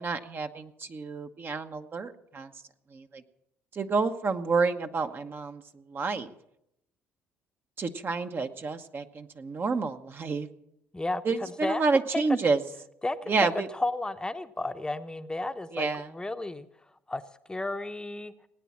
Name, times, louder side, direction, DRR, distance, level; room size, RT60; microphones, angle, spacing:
voice 1, 0.0-2.6 2.9-3.2 3.7-6.3 7.8-10.5 11.2-12.6 13.3-13.7 15.7-16.1, right 4 dB, 40° right, 7 dB, 1.2 m, -29 dB
voice 2, 13.0-13.3 13.8-15.9 16.1-16.7 17.1-17.2 17.5-18.3, left 2 dB, 15° left, 8 dB, 0.9 m, -32 dB
18.5 x 9.3 x 7.3 m, 0.78 s
hypercardioid pair, 65°, 6 cm